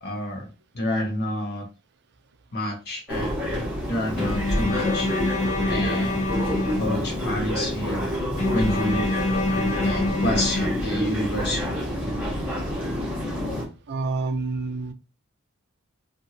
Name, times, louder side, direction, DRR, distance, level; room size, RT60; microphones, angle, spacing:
voice 1, 0.0-0.5 0.7-1.7 2.5-3.4 3.9-5.1 5.7-6.3 6.8-8.1 8.5-9.1 9.8-11.6, left 1 dB, 50° left, 1 dB, 1.0 m, -28 dB
sound 1, 3.1-13.7, equal, 5° right, 0.9 m, -28 dB
Bowed string instrument, 4.2-7.4 8.4-11.3, left 2 dB, 35° left, 0.6 m, -27 dB
voice 2, 13.9-14.9, right 3 dB, 55° right, 9 dB, 0.4 m, -28 dB
2.6 x 2.6 x 2.7 m, 0.30 s
head